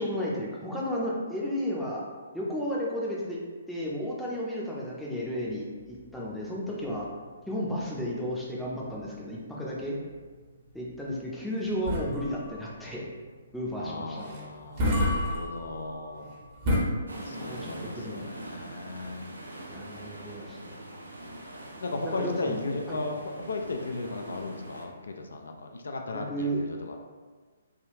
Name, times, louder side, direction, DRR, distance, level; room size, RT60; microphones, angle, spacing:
voice 1, 0.0-2.0 2.3-3.4 3.7-7.1 7.5-10.0 10.7-13.1 13.5-14.3 17.1-18.3 19.7-20.6 22.0-23.0 26.1-26.6, equal, ahead, -6 dB, 0.5 m, -33 dB
sound 1, 5.6-16.8, left 1 dB, 40° right, 0.8 m, -33 dB
voice 2, 13.8-16.3 17.2-19.3 21.8-27.0, left 3 dB, 75° left, 3 dB, 0.3 m, -36 dB
sound 2, 17.1-24.8, right 1 dB, 85° right, 0.5 m, -43 dB
3.4 x 2.3 x 2.7 m, 1.4 s
figure-of-eight pair, 130°, 0 cm